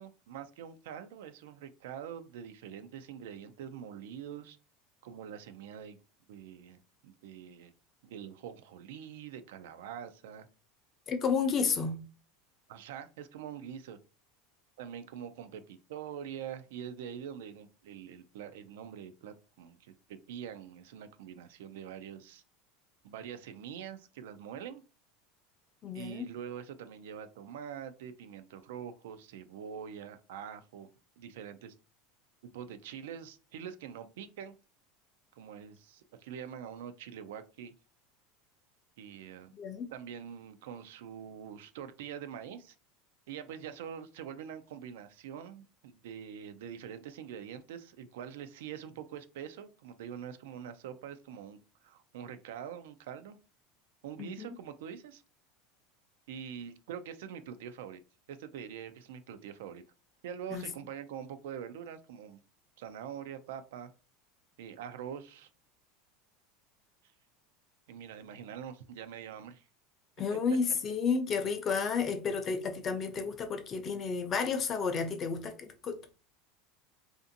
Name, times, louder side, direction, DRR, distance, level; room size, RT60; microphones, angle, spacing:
voice 1, 0.0-4.6 5.0-6.0 6.3-7.7 8.0-10.5 11.6-11.7 12.7-14.0 14.8-22.4 23.0-24.8 25.9-30.9 31.2-31.7 32.4-34.5 35.4-37.7 39.0-39.5 39.9-42.8 43.3-53.4 54.0-55.2 56.3-58.0 58.3-59.8 60.2-62.4 62.8-63.9 64.6-65.5 67.9-69.7, right 8 dB, 85° right, 0.3 m, -44 dB
voice 2, 11.1-12.0 25.8-26.3 39.5-39.9 54.2-54.6 60.5-60.6 70.2-76.1, left 5 dB, 30° left, 0.5 m, -32 dB
2.5 x 2.5 x 2.6 m
supercardioid pair, 140°, 0 cm